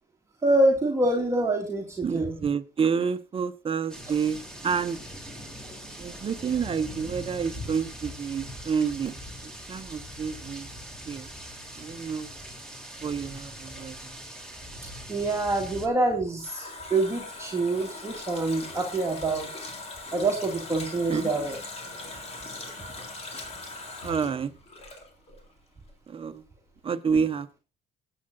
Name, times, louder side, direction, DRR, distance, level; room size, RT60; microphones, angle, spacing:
voice 1, 0.4-2.3 15.1-19.5 20.1-21.6 22.9-23.0, right 2 dB, 15° right, 2.4 m, -26 dB
voice 2, 2.0-5.0 6.0-9.2 9.4-10.7 11.1-11.3 11.8-12.3 13.0-14.1 21.1-21.3 24.0-24.6 26.1-26.4 26.8-27.6, right 6 dB, 35° right, 1.2 m, -29 dB
sound 1, 3.9-15.9, equal, 5° left, 3.5 m, -41 dB
Water tap faucet, 15.9-25.5 25.8-25.9, left 2 dB, 40° left, 3.7 m, -40 dB
20.5 x 9.0 x 2.6 m
cardioid pair, 110°, 17 cm